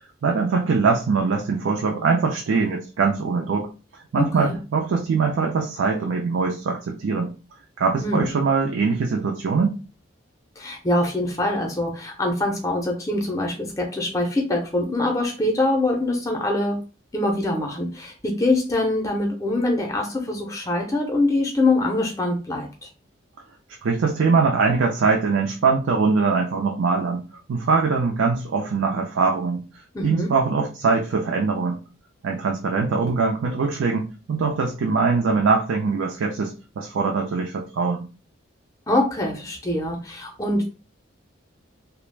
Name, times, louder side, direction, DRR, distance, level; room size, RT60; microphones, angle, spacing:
voice 1, 0.2-3.7 3.9-7.3 7.8-9.8 23.8-27.2 27.5-29.6 30.0-31.8 32.2-38.1, right 4 dB, 80° right, 1 dB, 0.4 m, -22 dB
voice 2, 4.2-4.6 8.0-8.3 10.6-16.8 17.1-22.7 29.9-30.3 38.9-40.7, left 2 dB, 15° left, 1 dB, 0.5 m, -24 dB
2.3 x 2.0 x 3.2 m, 0.33 s
head